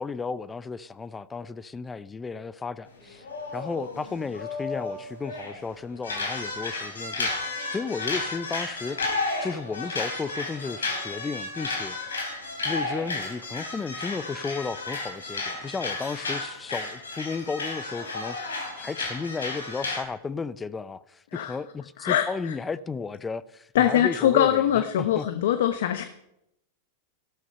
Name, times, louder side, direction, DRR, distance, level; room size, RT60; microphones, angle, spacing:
voice 1, 0.0-3.2 3.5-9.0 9.4-12.0 12.6-25.3, left 4 dB, 15° left, 0.6 m, -34 dB
sound 1, 3.0-5.6 6.0-20.0, left 3 dB, 90° left, 3.7 m, -33 dB
voice 2, 22.0-22.5 23.7-26.0, left 11 dB, 70° left, 0.9 m, -23 dB
14.0 x 12.5 x 5.5 m
hypercardioid pair, 100°, 0 cm